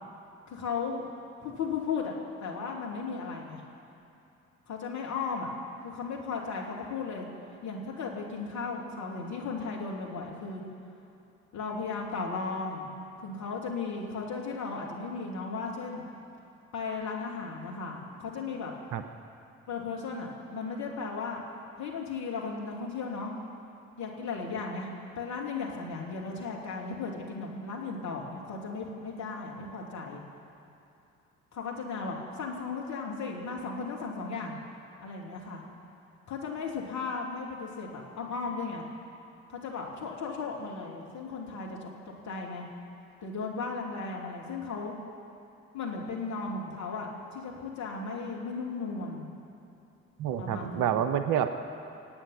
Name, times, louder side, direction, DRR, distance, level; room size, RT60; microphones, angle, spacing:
voice 1, 0.5-1.1 1.4-2.1 2.4-3.6 4.7-5.5 5.8-7.3 7.6-10.6 11.5-12.9 13.2-16.0 16.7-18.7 19.7-21.4 21.8-23.3 24.0-24.9 25.2-30.2 31.5-34.6 35.0-35.6 36.3-38.9 39.5-41.9 42.2-42.6 43.2-44.9 45.7-49.3 50.4-50.9, left 4 dB, 50° left, -2 dB, 3.0 m, -36 dB
voice 2, 50.2-51.5, right 9 dB, 60° right, 9 dB, 1.0 m, -28 dB
26.0 x 8.9 x 6.0 m, 2.7 s
figure-of-eight pair, 45°, 37 cm